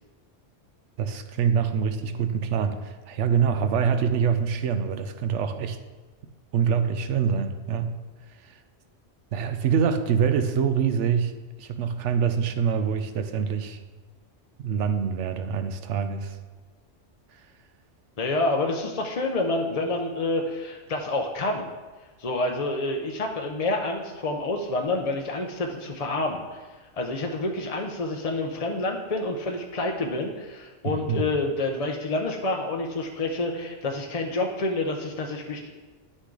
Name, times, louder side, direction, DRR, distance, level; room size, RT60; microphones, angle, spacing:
voice 1, 1.0-5.8 6.5-7.9 9.3-13.8 14.6-16.4 30.8-31.2, right 7 dB, 85° right, 9 dB, 1.0 m, -25 dB
voice 2, 18.2-21.7 22.2-35.7, left 2 dB, 40° left, 1 dB, 0.6 m, -28 dB
9.7 x 6.2 x 3.8 m, 1.3 s
omnidirectional pair, 1.2 m